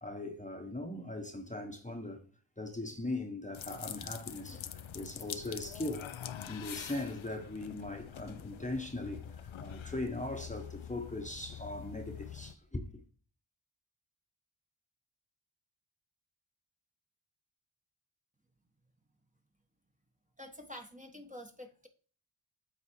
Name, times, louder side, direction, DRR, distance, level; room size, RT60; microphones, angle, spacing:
voice 1, 0.0-2.2 2.6-6.1 6.5-13.0, left 2 dB, 15° left, 1.1 m, -40 dB
sound 1, 3.5-12.5, left 9 dB, 75° left, 0.7 m, -45 dB
voice 2, 20.4-21.9, left 1 dB, 15° right, 1.2 m, -48 dB
8.3 x 4.0 x 4.5 m
wide cardioid pair, 55°, 47 cm